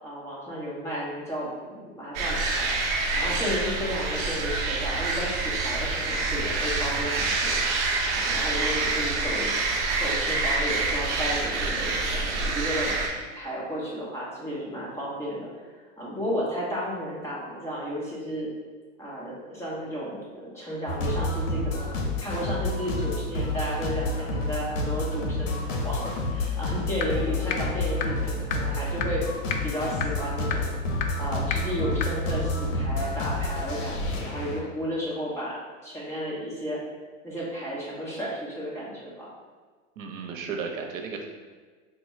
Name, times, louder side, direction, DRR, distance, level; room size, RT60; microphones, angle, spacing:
voice 1, 0.0-2.7 3.1-7.6 8.1-9.5 10.0-13.1 13.3-15.5 16.0-18.5 19.0-29.2 29.6-30.7 31.2-35.6 35.8-36.8 37.2-39.3, equal, 5° left, -7 dB, 1.1 m, -33 dB
sound 1, 2.1-13.1, right 3 dB, 45° right, 0.9 m, -27 dB
sound 2, 20.9-34.6, left 2 dB, 70° left, 0.8 m, -29 dB
sound 3, 27.0-27.1 27.5-27.6 28.0-28.1 28.5-28.6 29.0-29.1 29.5-29.6 30.0-30.1 30.5-30.6 31.0-31.1 31.5-31.6 32.0-32.1, left 9 dB, 90° left, 0.5 m, -28 dB
voice 2, 40.0-41.3, right 5 dB, 80° right, 3 dB, 0.8 m, -34 dB
4.9 x 2.3 x 3.2 m, 1.5 s
hypercardioid pair, 130°, 39 cm